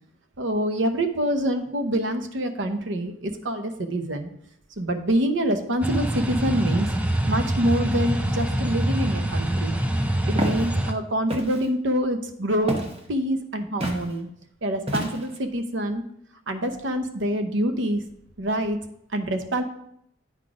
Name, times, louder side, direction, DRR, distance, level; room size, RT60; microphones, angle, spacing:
voice 1, 0.4-4.3 4.8-6.9 7.3-9.8 10.3-12.8 13.1-14.3 14.6-16.0 16.5-18.0 18.4-18.8 19.1-19.6, right 1 dB, 75° right, 7 dB, 0.8 m, -26 dB
sound 1, 5.8-10.9, right 1 dB, 5° right, 0.4 m, -25 dB
Walk footsteps, 10.4-10.6 11.3-11.7 12.7-13.0 13.8-14.0 14.9-15.4, equal, 30° right, 1.0 m, -28 dB
9.0 x 4.0 x 4.9 m, 0.73 s
head